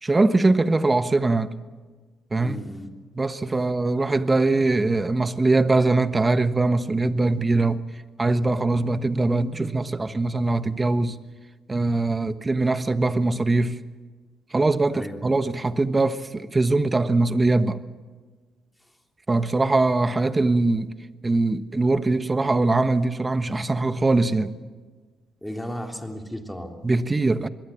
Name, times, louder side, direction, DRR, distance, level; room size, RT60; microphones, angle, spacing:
voice 1, 0.0-1.5 2.3-2.6 3.1-7.8 8.2-11.2 11.7-13.8 14.5-17.8 19.3-20.9 21.2-24.5 26.8-27.5, right 2 dB, 20° right, 1.3 m, -22 dB
voice 2, 2.4-2.9 14.9-15.3 25.4-26.7, equal, 5° left, 3.3 m, -35 dB
25.5 x 21.5 x 7.2 m
cardioid pair, 90°, 0 cm